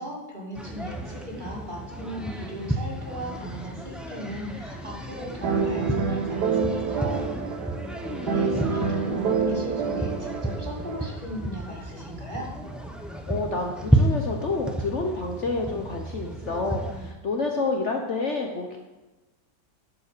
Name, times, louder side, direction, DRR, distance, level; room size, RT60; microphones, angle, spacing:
voice 1, 0.0-7.2 8.2-12.5, right 1 dB, 30° right, -3 dB, 2.5 m, -37 dB
sound 1, 0.5-17.1, right 1 dB, ahead, 0.5 m, -31 dB
sound 2, 5.4-11.1, right 5 dB, 75° right, 1.7 m, -27 dB
voice 2, 8.1-8.7 13.3-18.8, left 3 dB, 50° left, 2 dB, 1.1 m, -29 dB
11.5 x 5.4 x 6.8 m, 1.1 s
omnidirectional pair, 1.8 m